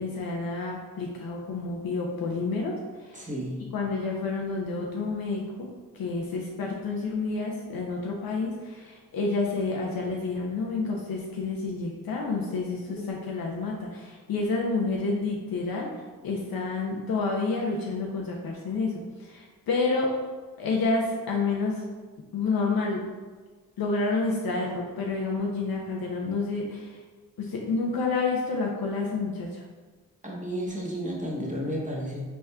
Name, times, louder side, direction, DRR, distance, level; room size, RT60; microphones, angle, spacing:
voice 1, 0.0-2.7 3.0-3.2 3.7-5.7 5.9-15.9 16.2-20.1 20.6-21.8 22.3-23.0 23.8-27.0 27.4-29.6, left 3 dB, 85° left, -1 dB, 0.5 m, -29 dB
voice 2, 3.1-3.6 12.9-13.1 30.2-32.2, equal, 20° right, -3 dB, 1.0 m, -32 dB
4.1 x 3.5 x 2.2 m, 1.4 s
cardioid pair, 50°, 35 cm